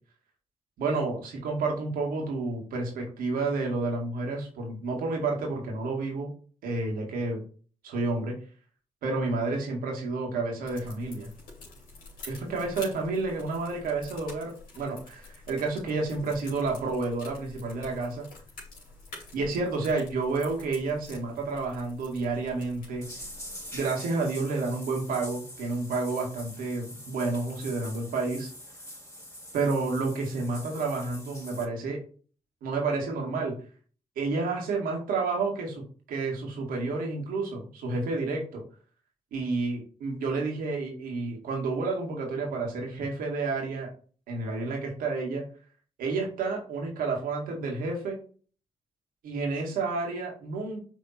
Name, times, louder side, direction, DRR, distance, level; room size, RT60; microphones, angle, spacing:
voice 1, 0.8-6.3 6.6-7.4 7.8-8.4 9.0-11.3 12.3-18.3 19.3-23.1 23.7-28.5 29.5-32.0 32.6-33.6 34.2-35.8 36.1-38.6 39.3-43.9 44.3-45.5 46.0-48.2 49.2-50.8, right 3 dB, 80° right, 0 dB, 1.9 m, -30 dB
sound 1, 10.6-23.9, left 3 dB, 75° left, 2.7 m, -48 dB
sound 2, 23.0-31.7, left 1 dB, 20° left, 3.2 m, -44 dB
6.3 x 3.7 x 4.2 m, 0.41 s
hypercardioid pair, 40°, 15 cm